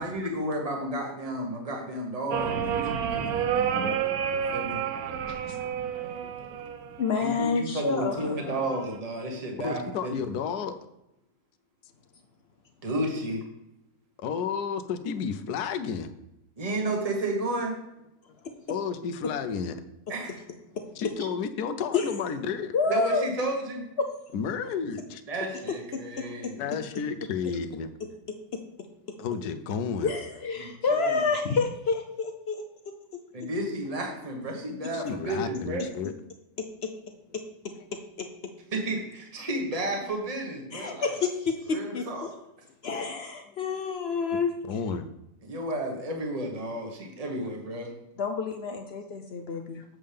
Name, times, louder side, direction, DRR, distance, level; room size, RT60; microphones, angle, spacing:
voice 1, 0.0-3.7 4.5-4.8 7.2-10.2 12.8-13.4 16.6-17.7 20.1-20.4 22.9-23.8 25.3-26.7 30.6-31.2 33.3-35.8 38.7-41.1 41.7-42.3 45.4-47.9, right 1 dB, 25° right, 1 dB, 1.3 m, -32 dB
sound 1, 2.3-7.3 8.5-9.0, right 8 dB, 70° right, 1.0 m, -30 dB
voice 2, 4.0-4.5 5.1-5.2 6.2-6.3 9.6-10.8 14.2-16.1 18.7-19.8 21.0-22.7 24.3-25.2 26.6-27.9 29.2-30.1 34.9-36.1 44.7-45.1 49.5-49.6, left 6 dB, 75° left, 10 dB, 1.2 m, -32 dB
voice 3, 7.0-8.5 18.4-18.5 21.9-22.1 22.7-23.3 24.0-24.1 25.9-26.3 30.0-32.9 36.8-36.9 37.3-37.4 38.2-38.3 40.7-42.3 42.8-44.5 48.2-49.8, left 4 dB, 60° left, 5 dB, 0.7 m, -29 dB
7.5 x 7.2 x 3.4 m, 0.88 s
omnidirectional pair, 1.7 m